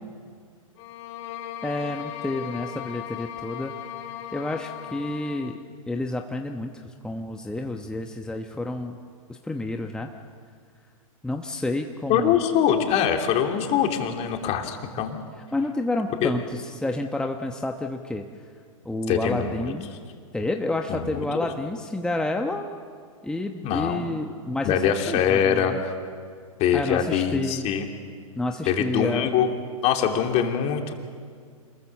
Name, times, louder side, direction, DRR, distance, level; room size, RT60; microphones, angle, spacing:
sound 1, 0.8-5.6, left 11 dB, 50° left, 2.8 m, -37 dB
voice 1, 1.6-3.8 4.3-5.6 5.9-9.0 9.3-10.1 11.2-12.4 15.5-18.2 18.8-19.9 20.3-22.7 23.2-25.8 26.7-27.7 28.3-29.3, left 2 dB, 5° left, 4 dB, 1.1 m, -29 dB
voice 2, 12.1-15.2 16.2-16.3 19.1-19.7 20.9-21.3 23.6-24.1 24.6-25.9 26.6-27.9 28.7-29.5 29.8-30.9, left 8 dB, 35° left, 4 dB, 3.0 m, -23 dB
27.5 x 21.0 x 7.3 m, 2.1 s
hypercardioid pair, 115°, 18 cm